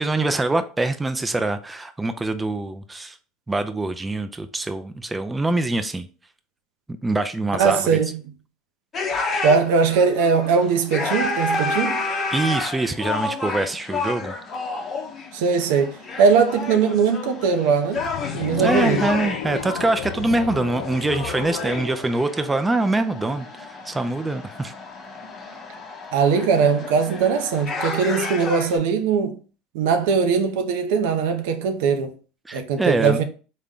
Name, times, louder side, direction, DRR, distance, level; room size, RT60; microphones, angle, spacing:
voice 1, 0.0-3.2 3.5-6.1 6.9-8.0 12.3-14.3 18.6-24.7 32.5-33.2, right 2 dB, 15° right, 0.3 m, -24 dB
voice 2, 7.5-8.4 9.4-12.0 15.3-18.0 18.3-19.1 26.1-29.4 29.7-32.2 32.5-33.2, right 5 dB, 75° right, 0.5 m, -20 dB
sound 1, 8.9-28.8, left 3 dB, 35° left, 0.8 m, -30 dB
sound 2, 17.9-23.2, left 7 dB, 85° left, 0.3 m, -34 dB
3.7 x 2.1 x 3.6 m
hypercardioid pair, 85°, 0 cm